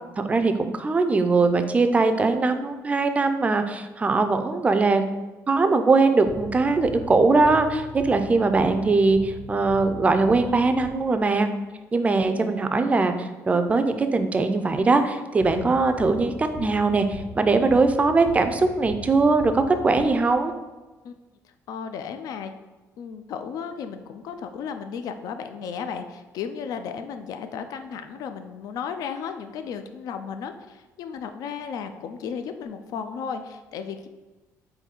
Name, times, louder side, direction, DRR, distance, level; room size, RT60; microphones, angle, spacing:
voice 1, 0.2-5.0 5.5-11.5 11.9-20.5, right 3 dB, 20° right, 8 dB, 0.4 m, -21 dB
sound 1, 6.3-11.4 15.4-20.6, left 2 dB, 45° left, 1.4 m, -40 dB
voice 2, 21.7-22.5 23.0-34.1, left 6 dB, 75° left, 8 dB, 0.3 m, -34 dB
3.8 x 2.6 x 4.3 m, 1.2 s
cardioid pair, 115°, 6 cm